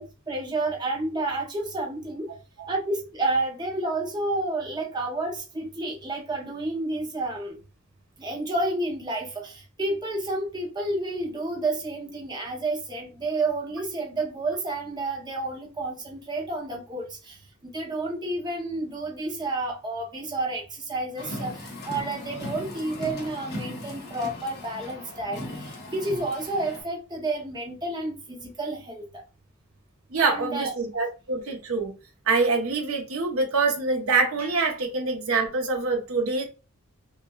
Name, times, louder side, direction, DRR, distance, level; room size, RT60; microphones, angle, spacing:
voice 1, 0.0-2.3 2.7-7.6 8.2-29.2 30.2-30.7, right 2 dB, 20° right, 0.6 m, -30 dB
Car, 21.2-26.8, left 1 dB, 50° left, 1.1 m, -38 dB
voice 2, 30.1-31.9 32.3-36.4, right 4 dB, 75° right, 0.9 m, -25 dB
5.2 x 2.3 x 2.3 m
head